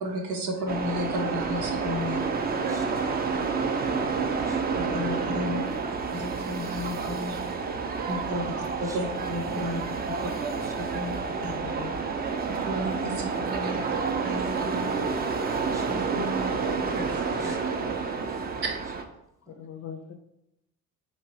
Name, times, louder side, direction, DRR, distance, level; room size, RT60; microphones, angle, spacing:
voice 1, 0.0-2.3 4.8-5.6 6.1-7.6 8.1-10.0 10.9-11.5 12.6-14.9 15.9-16.7 17.0-17.6, left 1 dB, 80° right, 1 dB, 0.7 m, -33 dB
sound 1, 0.7-19.0, right 5 dB, 25° right, 0.4 m, -29 dB
voice 2, 2.1-3.2 3.8-4.1 4.3-4.6 8.4-8.5 8.9-9.0 9.5-10.2 10.6-11.0 14.9-15.9 17.3-18.5 19.5-19.6, equal, 10° right, 3 dB, 0.8 m, -48 dB
voice 3, 4.8-5.4 7.1-7.2 9.1-9.3 9.7-9.9 11.2-12.1 12.7-13.1 13.8-14.2 15.4-15.9 17.8-18.2 19.6-20.0, left 7 dB, 35° left, 6 dB, 0.5 m, -44 dB
4.4 x 3.1 x 2.8 m, 0.85 s
figure-of-eight pair, 40°, 43 cm